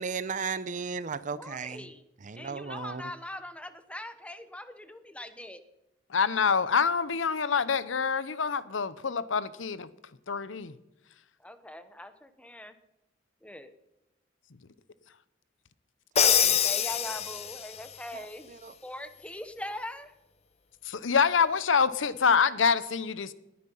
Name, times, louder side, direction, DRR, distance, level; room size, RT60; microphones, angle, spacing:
voice 1, 0.0-1.9 2.2-3.1 16.2-16.3 18.1-18.7, right 5 dB, 40° right, 15 dB, 0.6 m, -36 dB
voice 2, 1.3-2.0 2.3-5.6 11.4-12.7 13.4-13.7 16.2-18.5 18.8-20.1, left 1 dB, 5° left, 11 dB, 0.9 m, -41 dB
voice 3, 6.1-9.9 10.3-10.7 20.8-23.3, left 6 dB, 80° left, 16 dB, 0.7 m, -26 dB
Crash cymbal, 16.2-17.8, left 8 dB, 35° left, 0.8 m, -25 dB
19.5 x 9.8 x 5.6 m, 0.94 s
head